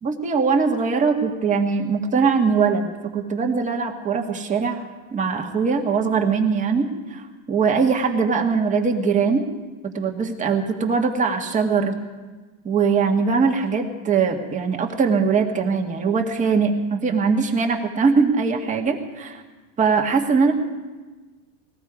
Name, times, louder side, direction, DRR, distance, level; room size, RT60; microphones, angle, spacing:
voice 1, 0.0-9.5 9.8-12.0 12.6-19.4 19.8-20.5, right 5 dB, 15° right, 2 dB, 1.6 m, -21 dB
20.0 x 14.5 x 4.9 m, 1.3 s
supercardioid pair, 140°, 43 cm